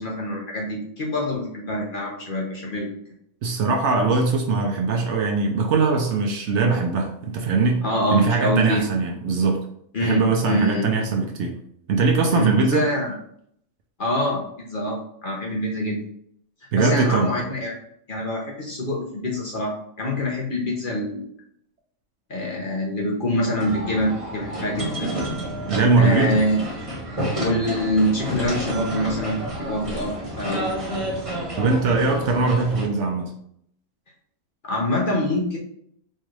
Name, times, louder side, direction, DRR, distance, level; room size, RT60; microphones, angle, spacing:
voice 1, 0.0-2.9 7.8-8.9 9.9-10.9 12.3-13.1 14.0-16.0 16.7-17.7 18.1-21.3 22.3-25.1 25.9-26.6 27.4-30.7 34.6-35.6, left 1 dB, 50° left, -2 dB, 0.7 m, -25 dB
voice 2, 3.4-7.8 8.1-9.6 10.0-11.6 11.9-12.9 16.7-17.4 25.7-26.4 31.6-33.3, right 4 dB, 65° right, 2 dB, 0.8 m, -21 dB
sound 1, 23.6-32.9, right 1 dB, 25° right, 1.0 m, -30 dB
4.3 x 2.4 x 3.1 m, 0.69 s
omnidirectional pair, 1.4 m